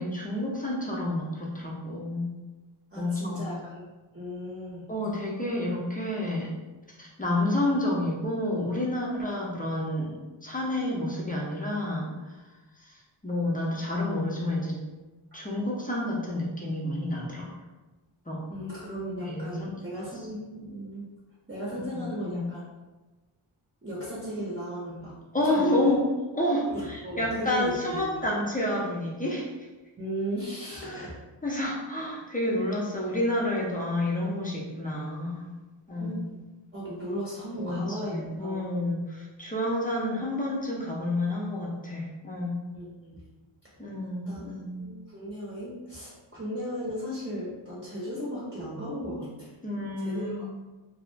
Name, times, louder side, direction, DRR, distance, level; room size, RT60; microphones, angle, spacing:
voice 1, 0.0-2.3 3.0-3.5 4.9-6.5 7.0-10.1 10.4-12.1 12.9-13.0 13.2-14.7 15.3-17.5 18.3-18.4 19.2-19.7 21.9-22.5 25.3-26.0 26.3-29.5 30.8-31.1 31.4-35.4 35.9-36.2 37.6-42.5 43.8-44.8 49.6-50.5, left 1 dB, 15° left, -4 dB, 0.5 m, -29 dB
voice 2, 2.9-3.9 4.1-4.9 18.5-21.1 21.5-22.6 23.8-25.2 25.4-25.9 26.7-28.3 30.0-31.1 35.9-36.3 36.7-38.8 42.7-43.2 43.6-43.7 44.3-44.5 44.8-49.5 49.8-50.5, equal, 20° right, -8 dB, 0.7 m, -36 dB
2.3 x 2.0 x 3.2 m, 1.2 s
wide cardioid pair, 90°, 50 cm